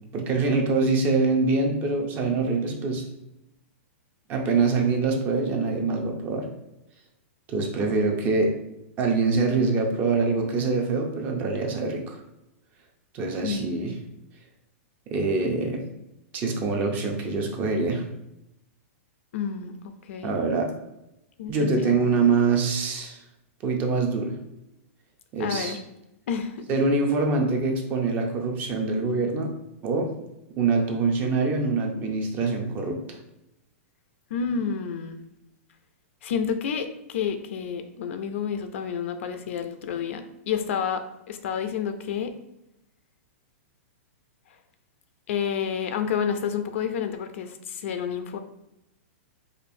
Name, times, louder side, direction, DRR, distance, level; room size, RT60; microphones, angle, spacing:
voice 1, 0.1-3.0 4.3-6.5 7.5-8.5 9.0-12.2 13.1-13.9 15.1-15.8 16.3-18.0 20.2-20.7 21.5-23.2 23.6-24.3 25.3-25.7 26.7-29.5 29.8-30.1 30.6-33.2, right 3 dB, 25° right, 2 dB, 0.5 m, -24 dB
voice 2, 13.4-13.9 19.3-20.4 21.4-22.0 25.4-25.8 26.3-26.7 34.3-35.2 36.2-42.4 45.3-48.4, left 7 dB, 60° left, 8 dB, 0.4 m, -30 dB
5.0 x 2.5 x 2.6 m, 0.87 s
supercardioid pair, 160°, 8 cm